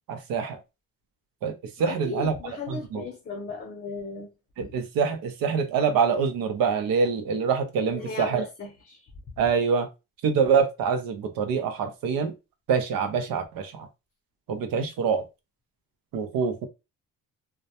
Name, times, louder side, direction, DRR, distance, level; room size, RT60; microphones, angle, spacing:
voice 1, 0.1-0.6 1.4-2.3 2.7-3.0 4.6-8.5 9.4-9.9 10.2-12.3 12.7-13.9 14.5-15.2 16.1-16.7, right 6 dB, 75° right, 0.6 m, -25 dB
voice 2, 1.8-4.3 7.9-9.0, left 4 dB, 30° left, 0.6 m, -36 dB
2.2 x 2.1 x 2.8 m
cardioid pair, 105°, 35 cm